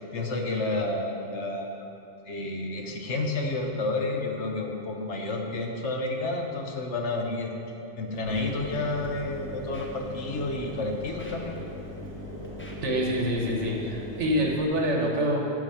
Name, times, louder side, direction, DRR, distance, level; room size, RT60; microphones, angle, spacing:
voice 1, 0.1-1.9 2.3-7.5 8.0-11.6, left 2 dB, 75° left, 2 dB, 1.3 m, -30 dB
Scratching (performance technique), 8.2-8.8 9.0-9.2 9.7-9.9 10.4-10.6 11.1-12.1 12.4-12.8 13.3-13.4, equal, 10° left, 1.0 m, -49 dB
Engine, 8.2-14.7, left 1 dB, 25° right, 1.4 m, -39 dB
voice 2, 12.8-15.5, equal, 80° right, 0 dB, 1.6 m, -26 dB
9.4 x 7.3 x 5.8 m, 2.7 s
omnidirectional pair, 1.2 m